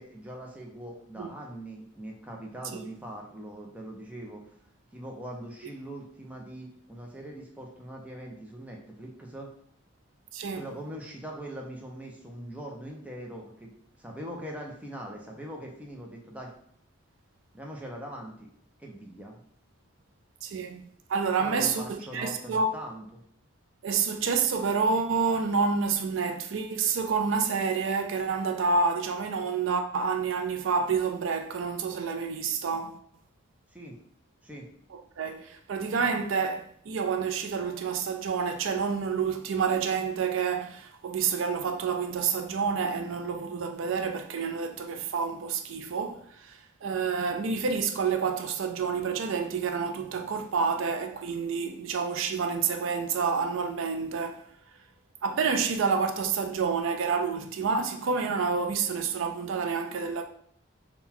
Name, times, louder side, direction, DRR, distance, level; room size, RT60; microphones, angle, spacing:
voice 1, 0.0-4.4 4.9-9.5 10.5-13.7 14.0-16.5 17.5-18.5 18.8-19.4 21.4-23.2 33.7-33.9 34.4-34.7, right 1 dB, 5° right, 0.6 m, -41 dB
voice 2, 10.3-10.6 20.4-22.7 23.8-33.0 34.9-54.4 55.2-60.2, right 5 dB, 70° right, 0.4 m, -28 dB
3.7 x 2.3 x 4.3 m
head